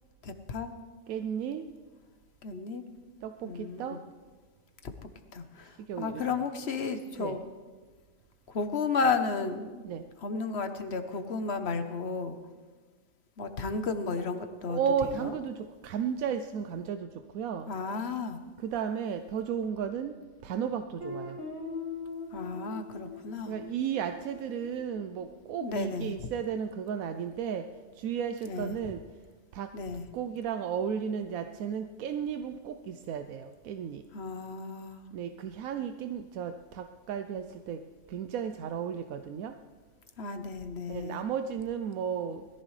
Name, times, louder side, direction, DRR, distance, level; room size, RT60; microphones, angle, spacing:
voice 1, 0.2-0.7 2.4-2.8 3.4-4.0 4.8-7.4 8.5-9.8 10.2-12.4 13.4-15.4 17.7-18.4 22.3-23.5 25.6-26.3 28.4-28.8 29.7-30.1 34.1-35.0 40.2-41.2, left 4 dB, 55° left, 8 dB, 1.2 m, -33 dB
voice 2, 1.1-1.6 3.2-4.0 5.9-6.3 7.2-7.4 9.8-10.0 14.7-17.1 17.3-17.7 18.6-20.1 20.4-21.4 23.5-27.6 28.0-29.0 29.5-29.7 30.1-34.0 35.1-37.8 38.1-39.5 40.9-42.5, right 7 dB, 90° right, 8 dB, 1.1 m, -34 dB
Guitar, 21.0-25.7, left 4 dB, 60° right, 3.1 m, -42 dB
20.5 x 14.5 x 3.2 m, 1.4 s
omnidirectional pair, 1.4 m